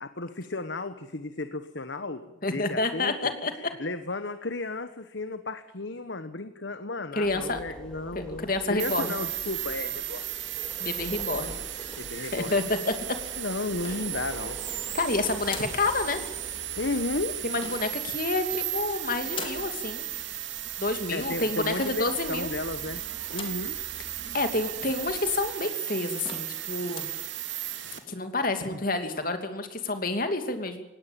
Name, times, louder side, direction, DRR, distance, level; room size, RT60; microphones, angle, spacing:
voice 1, 0.0-3.1 3.8-10.3 12.0-12.6 13.4-14.6 16.8-17.4 21.1-23.0 23.3-23.8 28.6-28.8, left 2 dB, 65° left, 10 dB, 1.2 m, -34 dB
voice 2, 2.4-3.5 7.1-7.6 8.1-9.1 10.8-11.5 12.3-12.9 14.9-16.2 17.4-20.1 20.8-22.5 24.3-27.1 28.1-30.8, left 2 dB, 45° left, 7 dB, 2.8 m, -29 dB
sound 1, 7.2-25.5, equal, 5° left, 3.2 m, -47 dB
sound 2, 8.8-28.0, right 12 dB, 70° right, 2.9 m, -35 dB
sound 3, 13.8-14.5 15.4-15.9 17.5-18.0 19.3-19.7 21.7-22.1 23.3-23.7 24.2-24.3 24.5-24.6 25.4-25.5 25.9-26.0 26.2-26.6 26.8-27.2, left 4 dB, 25° left, 3.0 m, -41 dB
19.5 x 17.0 x 9.0 m, 0.96 s
head